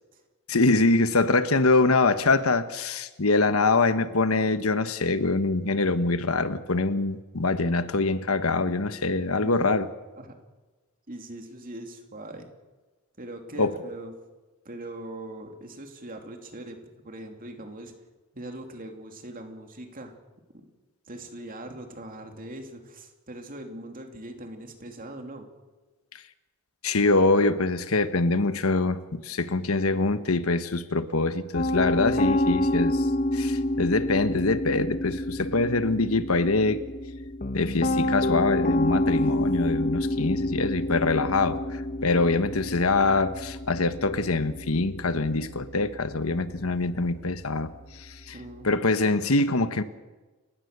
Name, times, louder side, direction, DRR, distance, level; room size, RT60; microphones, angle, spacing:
voice 1, 0.5-9.9 13.6-13.7 26.1-26.2 26.8-36.8 37.5-48.4 48.6-49.8, left 3 dB, 85° left, 1.2 m, -24 dB
voice 2, 9.4-9.8 10.2-10.3 11.1-12.5 13.2-14.1 14.6-17.9 18.3-20.1 20.5-20.7 21.1-25.5 48.3-48.7, right 1 dB, 40° right, 2.9 m, -41 dB
Piano, 31.5-48.7, left 1 dB, 40° left, 1.2 m, -29 dB
29.5 x 16.5 x 6.8 m
head